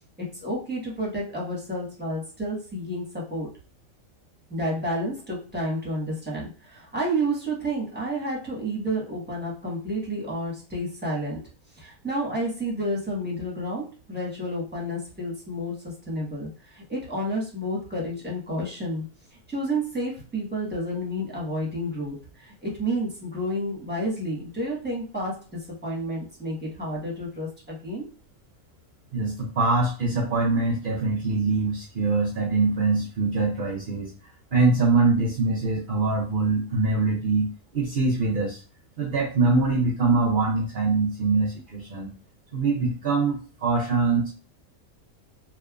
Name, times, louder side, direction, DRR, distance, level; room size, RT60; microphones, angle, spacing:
voice 1, 0.3-3.5 4.5-11.4 11.8-15.7 16.1-19.0 19.5-25.4 25.8-28.0, right 1 dB, 10° right, -4 dB, 1.2 m, -30 dB
voice 2, 29.1-34.1 34.5-37.5 37.7-38.6 39.0-42.1 42.5-44.3, right 3 dB, 55° right, -2 dB, 0.5 m, -23 dB
3.4 x 2.9 x 2.3 m, 0.37 s
omnidirectional pair, 1.5 m